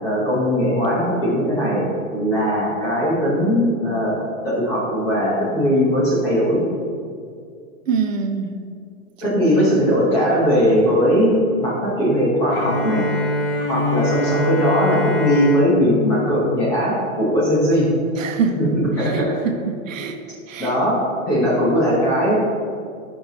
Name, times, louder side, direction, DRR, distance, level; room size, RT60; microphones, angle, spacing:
voice 1, 0.0-4.2 4.4-6.6 9.2-11.3 11.6-13.0 13.7-17.9 18.6-19.3 20.6-21.0 21.3-22.3, equal, 10° left, -7 dB, 0.7 m, -19 dB
voice 2, 7.9-8.5 18.2-18.6 19.1-20.2 20.5-20.7, right 5 dB, 70° right, 5 dB, 1.0 m, -24 dB
Bowed string instrument, 12.5-17.4, left 2 dB, 40° left, 1.1 m, -24 dB
12.0 x 5.9 x 2.8 m, 2.3 s
hypercardioid pair, 175°, 41 cm